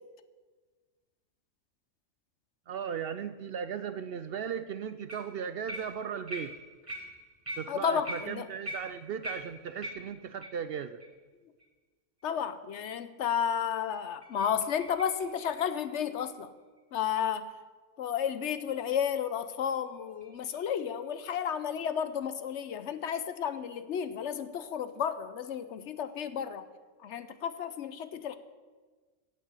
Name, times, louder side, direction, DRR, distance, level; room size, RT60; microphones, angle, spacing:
voice 1, 2.7-6.5 7.6-11.0, right 7 dB, 60° right, 11 dB, 0.6 m, -37 dB
sound 1, 5.1-5.4 5.7-10.6 11.0-11.1 11.6-11.7 12.2-12.3 14.0-16.8 19.6-21.1, equal, 25° right, 1.9 m, -43 dB
voice 2, 7.7-8.5 12.2-16.5 16.9-17.5 18.0-26.7 27.0-28.4, left 8 dB, 70° left, 12 dB, 1.0 m, -32 dB
16.0 x 5.5 x 8.2 m, 1.4 s
omnidirectional pair, 1.3 m